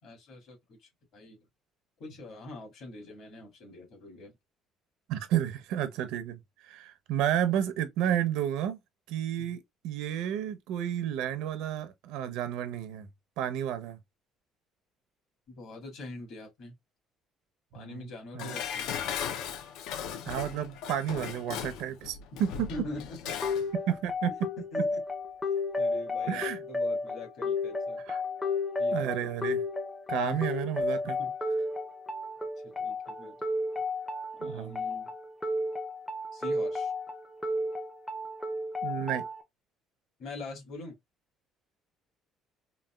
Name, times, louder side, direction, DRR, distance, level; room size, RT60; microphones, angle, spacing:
voice 1, 0.0-1.4 2.0-4.3 9.4-9.6 15.5-16.8 17.7-18.9 22.7-23.3 24.6-25.0 25.8-28.0 28.8-29.3 30.2-30.5 31.2-31.4 32.6-33.4 34.4-35.1 36.3-36.9 40.2-41.0, left 2 dB, 55° left, 1.8 m, -44 dB
voice 2, 5.1-6.4 6.7-8.8 9.1-13.1 13.4-14.0 17.7-18.0 18.3-18.6 20.3-22.7 23.9-24.3 26.3-26.6 28.1-28.2 28.9-29.6 30.1-31.2 34.4-34.8 38.8-39.3, right 10 dB, 90° right, 0.6 m, -31 dB
Dishes pots and pans, 18.4-23.7 24.0-24.1, left 8 dB, 75° left, 0.4 m, -37 dB
sound 1, 23.4-39.4, left 2 dB, 5° left, 0.4 m, -32 dB
3.9 x 2.2 x 2.2 m
cardioid pair, 175°, 0 cm